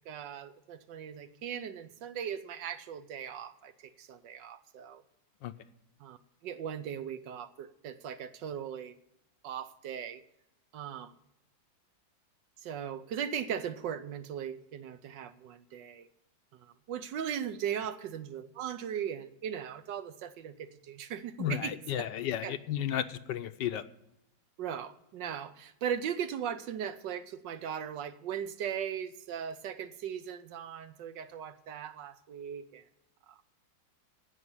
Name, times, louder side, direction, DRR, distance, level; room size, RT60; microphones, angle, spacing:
voice 1, 0.1-5.0 6.0-6.2 6.4-9.0 9.4-10.2 10.7-11.1 12.6-16.1 16.6-21.7 22.4-22.5 24.6-32.8 33.3-33.4, right 8 dB, 75° right, 11 dB, 1.4 m, -38 dB
voice 2, 21.4-23.8, left 10 dB, 75° left, 11 dB, 1.3 m, -33 dB
16.0 x 5.8 x 9.6 m, 0.83 s
omnidirectional pair, 2.1 m